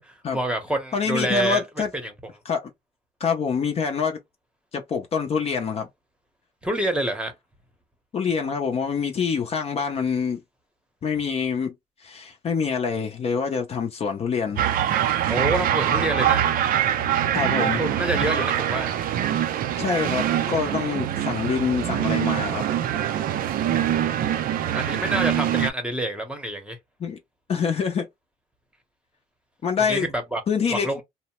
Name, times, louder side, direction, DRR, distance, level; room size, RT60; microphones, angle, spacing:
voice 1, 0.0-1.6 2.0-2.1 6.6-7.3 15.3-16.5 17.6-18.9 23.7-26.8 29.8-30.4 30.7-31.0, right 1 dB, 5° right, 0.8 m, -27 dB
voice 2, 0.9-1.9 2.5-2.7 3.2-4.2 4.7-5.9 8.1-10.4 11.0-11.7 12.0-14.6 17.3-17.8 19.8-22.6 27.0-27.2 27.5-28.1 29.6-30.1 30.5-30.9, left 6 dB, 35° left, 0.5 m, -25 dB
sound 1, 14.6-25.7, right 10 dB, 60° right, 0.4 m, -24 dB
2.7 x 2.0 x 3.0 m
cardioid pair, 110°, 17 cm